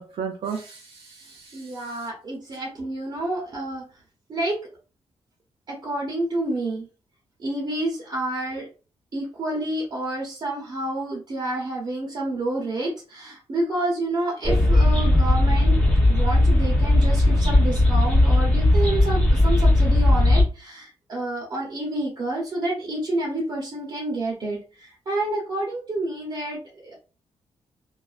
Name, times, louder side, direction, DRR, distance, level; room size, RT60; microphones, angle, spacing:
voice 1, 0.0-2.1, right 6 dB, 80° right, 1 dB, 0.4 m, -35 dB
voice 2, 1.5-3.8 4.3-4.6 5.7-6.8 7.4-8.7 9.1-15.8 16.1-26.9, right 1 dB, 40° right, -2 dB, 0.7 m, -29 dB
sound 1, 14.4-20.4, left 1 dB, 10° left, 0.6 m, -18 dB
2.4 x 2.2 x 2.3 m, 0.35 s
wide cardioid pair, 125°, 11 cm